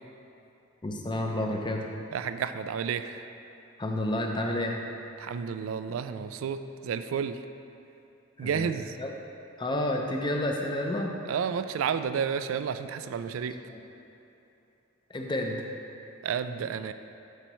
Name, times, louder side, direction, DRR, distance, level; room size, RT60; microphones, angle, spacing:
voice 1, 0.8-1.9 3.8-4.8 8.4-8.7 9.0-9.1 9.6-11.1 13.3-13.8 15.1-15.6, left 1 dB, 25° left, 1 dB, 0.6 m, -30 dB
voice 2, 2.1-3.2 5.2-7.4 8.4-8.9 11.3-13.6 16.2-16.9, right 7 dB, 75° right, 10 dB, 0.3 m, -31 dB
11.0 x 4.5 x 3.0 m, 3.0 s
head